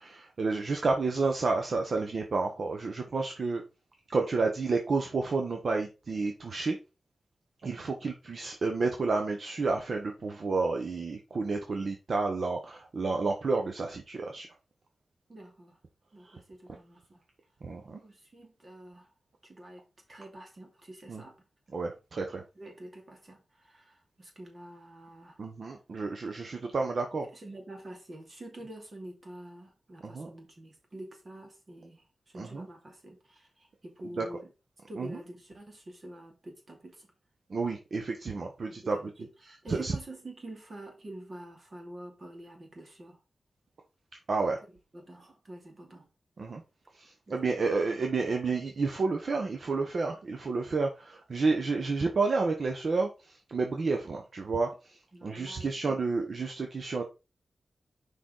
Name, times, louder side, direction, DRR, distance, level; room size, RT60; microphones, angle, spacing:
voice 1, 0.0-3.6 4.1-6.8 7.6-14.5 16.2-16.4 17.6-18.0 21.1-21.2 21.7-22.4 25.4-27.3 30.0-30.3 32.3-32.7 34.2-34.4 35.0-35.2 37.5-39.3 39.7-39.9 44.3-44.6 46.4-46.6 46.9-57.0, right 3 dB, 60° right, 1.0 m, -30 dB
voice 2, 15.3-15.8 16.1-17.2 18.0-19.1 19.4-19.8 20.1-21.3 22.5-25.4 27.2-34.5 34.9-37.1 38.7-39.3 39.6-43.2 44.9-46.1 47.3-47.4 55.1-56.0, right 1 dB, 40° right, 2.7 m, -47 dB
6.4 x 5.4 x 3.9 m
wide cardioid pair, 125°, 0 cm